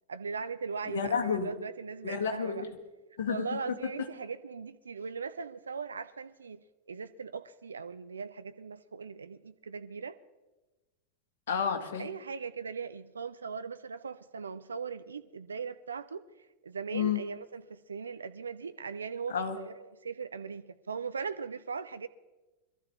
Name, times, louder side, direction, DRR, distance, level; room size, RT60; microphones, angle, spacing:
voice 1, 0.1-2.6 3.3-6.6 6.9-10.2 12.0-16.3 16.6-22.1, right 5 dB, 70° right, 0.4 m, -39 dB
voice 2, 0.9-1.5 2.0-2.8 3.2-3.8 11.5-12.1 16.9-17.2 19.3-19.6, left 7 dB, 60° left, 1.6 m, -31 dB
22.5 x 13.0 x 3.6 m
figure-of-eight pair, 90°, 0 cm